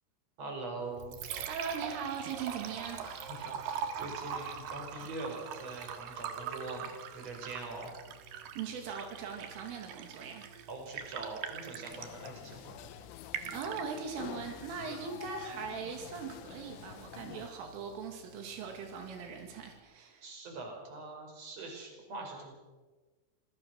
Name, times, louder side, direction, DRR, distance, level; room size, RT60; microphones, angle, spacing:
voice 1, 0.4-1.2 3.0-7.9 10.7-12.9 20.2-22.5, right 2 dB, 35° right, 2 dB, 6.0 m, -43 dB
Liquid, 0.8-19.8, right 7 dB, 65° right, 3.2 m, -44 dB
voice 2, 1.2-3.2 8.6-10.5 13.5-20.3, right 6 dB, 80° right, 3 dB, 4.7 m, -40 dB
sound 1, 11.9-17.5, left 14 dB, 80° left, 3.0 m, -47 dB
27.0 x 19.5 x 6.4 m, 1.3 s
omnidirectional pair, 5.7 m